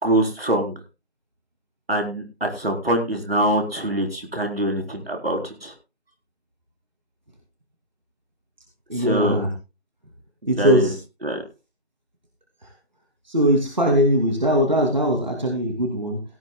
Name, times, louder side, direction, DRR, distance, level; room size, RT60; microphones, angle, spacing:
voice 1, 0.0-0.7 1.9-5.7 9.0-9.4 10.6-10.9 11.2-11.4, right 1 dB, 65° right, 3 dB, 4.2 m, -24 dB
voice 2, 8.9-9.5 10.5-11.0 12.6-12.7 13.2-16.2, equal, 45° right, 1 dB, 2.8 m, -20 dB
17.0 x 13.5 x 2.3 m, 0.28 s
figure-of-eight pair, 180°, 32 cm